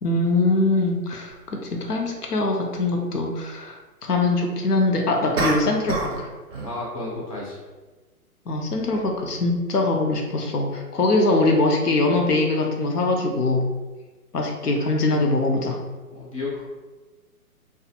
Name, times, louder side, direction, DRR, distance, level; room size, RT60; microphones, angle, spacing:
voice 1, 0.0-6.3 8.5-13.7 14.3-15.8, left 2 dB, 80° left, 2 dB, 0.7 m, -22 dB
sound 1, 1.3-1.4 5.4-6.2 6.5-6.8, right 3 dB, 45° right, 0.5 m, -27 dB
voice 2, 6.6-7.6 16.1-16.6, left 2 dB, 25° left, -6 dB, 0.5 m, -32 dB
2.4 x 2.3 x 2.7 m, 1.2 s
figure-of-eight pair, 130°, 46 cm